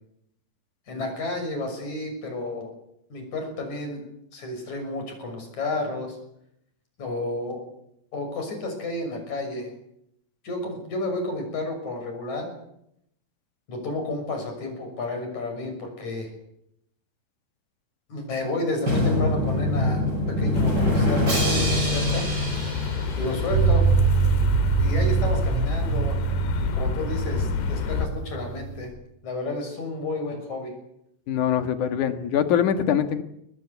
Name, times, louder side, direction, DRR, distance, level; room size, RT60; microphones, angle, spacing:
voice 1, 0.9-2.7 3.1-4.0 4.3-6.2 7.0-7.6 8.1-9.7 10.4-12.5 13.7-16.3 18.1-22.3 23.2-23.9 24.8-26.2 26.6-28.9 29.2-30.7, left 2 dB, 45° left, 4 dB, 7.5 m, -31 dB
Drum, 18.9-23.7, left 1 dB, 25° right, 6.7 m, -24 dB
sound 1, 20.5-28.1, left 6 dB, 75° left, 3.8 m, -29 dB
sound 2, 23.5-28.8, right 6 dB, 45° right, 6.7 m, -23 dB
voice 2, 31.3-33.2, left 9 dB, 60° left, 8 dB, 2.6 m, -23 dB
23.0 x 20.0 x 8.2 m, 0.77 s
omnidirectional pair, 4.8 m